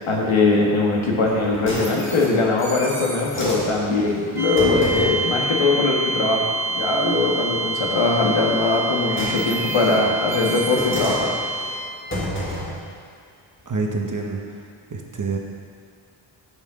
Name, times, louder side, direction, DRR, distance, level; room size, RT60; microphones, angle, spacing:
voice 1, 0.1-6.5 6.7-11.3, left 3 dB, 75° left, -1 dB, 1.5 m, -21 dB
sound 1, 1.2-5.3 8.7-12.9 13.6-13.7, equal, 25° left, 1.6 m, -31 dB
sound 2, 4.4-12.1, right 2 dB, 5° right, 0.5 m, -27 dB
voice 2, 13.7-14.4 14.9-15.4, right 3 dB, 40° right, 1 dB, 0.9 m, -26 dB
14.5 x 5.6 x 3.6 m, 2.2 s
wide cardioid pair, 165°, 48 cm